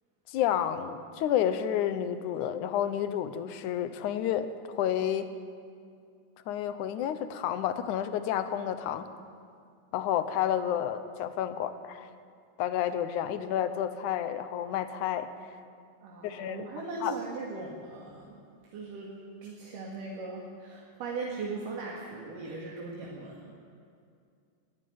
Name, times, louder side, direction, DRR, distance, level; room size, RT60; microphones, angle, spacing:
voice 1, 0.3-5.3 6.5-9.1 9.9-12.1 12.6-15.3 16.2-17.2, left 10 dB, 70° left, 11 dB, 2.3 m, -30 dB
voice 2, 16.0-18.4 18.7-19.1 19.4-23.5, right 3 dB, 70° right, -3 dB, 3.6 m, -39 dB
20.0 x 15.0 x 9.4 m, 2.3 s
omnidirectional pair, 4.0 m